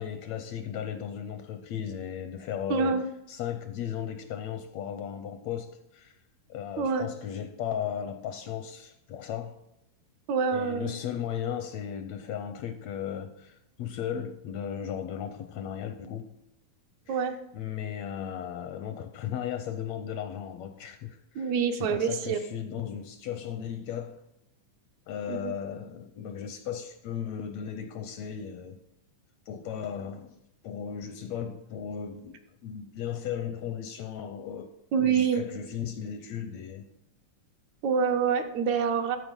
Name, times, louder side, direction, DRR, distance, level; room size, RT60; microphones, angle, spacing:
voice 1, 0.0-6.2 6.5-9.6 10.5-16.3 17.1-17.2 17.5-24.2 25.1-28.8 29.5-30.3 30.6-36.8, left 9 dB, 80° left, 1.6 m, -36 dB
voice 2, 2.7-3.0 6.8-7.1 10.3-10.9 17.1-17.4 21.4-22.4 25.3-25.5 34.9-35.4 37.8-39.2, right 6 dB, 75° right, 2.0 m, -26 dB
13.5 x 4.7 x 5.2 m
omnidirectional pair, 3.5 m